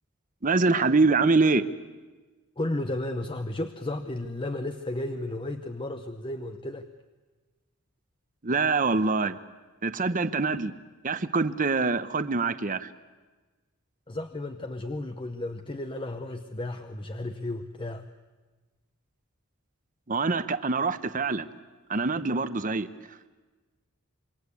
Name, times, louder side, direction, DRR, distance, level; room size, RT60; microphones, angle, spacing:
voice 1, 0.4-1.6 8.4-9.4 9.8-10.7 11.0-12.9 20.1-21.5 21.9-22.9, right 3 dB, 40° right, 12 dB, 0.9 m, -24 dB
voice 2, 2.6-6.9 14.1-18.1, left 1 dB, 25° left, 7 dB, 0.9 m, -33 dB
27.0 x 23.5 x 8.4 m, 1.3 s
head